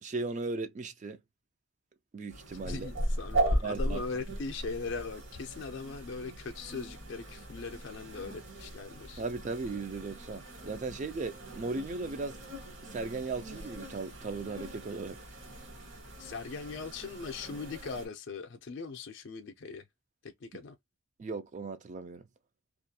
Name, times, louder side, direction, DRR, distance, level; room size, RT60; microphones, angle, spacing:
voice 1, 0.0-1.2 2.1-2.9 3.6-4.0 9.2-12.4 12.9-15.2 21.2-22.2, right 3 dB, 35° right, 0.3 m, -37 dB
sound 1, 2.3-18.1, right 1 dB, 60° right, 1.2 m, -38 dB
voice 2, 2.6-9.2 16.2-19.8 20.2-20.8, left 4 dB, 55° left, 0.4 m, -40 dB
2.4 x 2.2 x 2.6 m
head